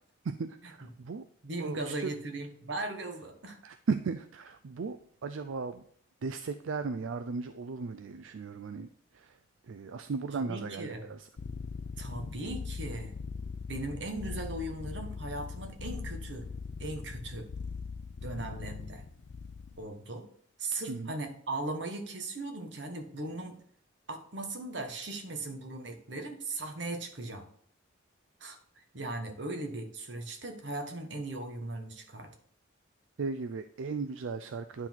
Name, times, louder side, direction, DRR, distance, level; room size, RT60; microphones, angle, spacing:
voice 1, 0.2-1.2 1.6-2.1 3.6-5.8 6.2-8.9 9.1-9.4 9.7-11.3 20.9-21.1 33.2-34.9, right 4 dB, 85° right, 10 dB, 0.4 m, -36 dB
voice 2, 1.4-3.6 10.3-11.1 12.0-13.2 13.7-16.5 16.8-17.5 18.2-19.0 19.8-20.3 20.6-23.6 24.1-27.5 28.4-32.3, right 2 dB, 65° right, 5 dB, 1.3 m, -38 dB
sound 1, 11.4-19.9, left 5 dB, 60° left, 0.5 m, -40 dB
9.7 x 3.9 x 4.5 m, 0.63 s
head